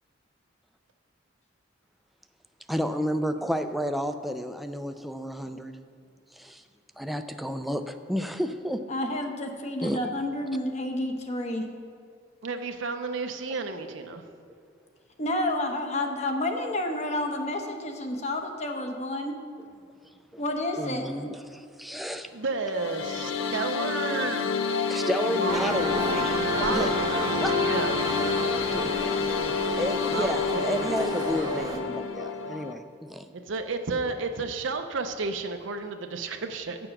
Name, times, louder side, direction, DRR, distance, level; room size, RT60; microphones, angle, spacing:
voice 1, 2.7-5.7 6.3-6.6 7.0-8.8 9.8-10.0 20.8-22.3 24.9-27.6 28.7-28.9 29.8-33.3, equal, ahead, 7 dB, 0.4 m, -31 dB
voice 2, 8.9-11.7 15.2-19.4 20.4-21.2, left 1 dB, 35° left, 4 dB, 1.0 m, -30 dB
voice 3, 12.4-14.2 22.3-24.6 25.4-25.7 26.5-27.3 27.6-28.0 30.1-31.8 33.3-36.8, right 3 dB, 75° right, 5 dB, 0.6 m, -32 dB
sound 1, 22.5-32.7, left 5 dB, 80° left, 0.6 m, -28 dB
sound 2, 25.5-31.8, right 2 dB, 20° right, 0.8 m, -32 dB
8.6 x 6.9 x 5.9 m, 2.3 s
head